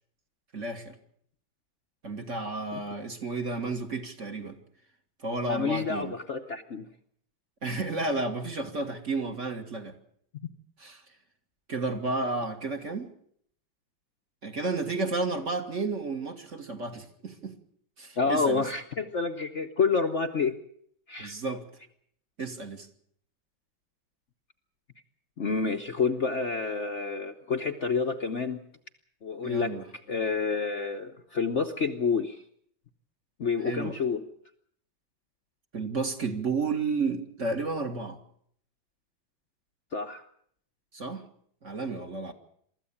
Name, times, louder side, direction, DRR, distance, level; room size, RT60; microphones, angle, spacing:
voice 1, 0.5-0.9 2.0-4.6 5.2-6.1 7.6-10.0 10.8-11.0 11.7-13.1 14.4-17.6 18.0-18.6 21.2-21.6 22.4-22.9 29.4-29.9 33.6-34.0 35.7-38.2 40.9-41.2 41.6-42.3, right 3 dB, 40° right, 4 dB, 2.1 m, -32 dB
voice 2, 5.5-6.9 18.2-20.5 21.1-21.3 25.4-28.6 29.2-29.8 30.1-32.4 33.4-34.2 39.9-40.2, left 5 dB, 45° left, 5 dB, 1.1 m, -28 dB
24.0 x 14.0 x 8.5 m, 0.66 s
omnidirectional pair, 2.1 m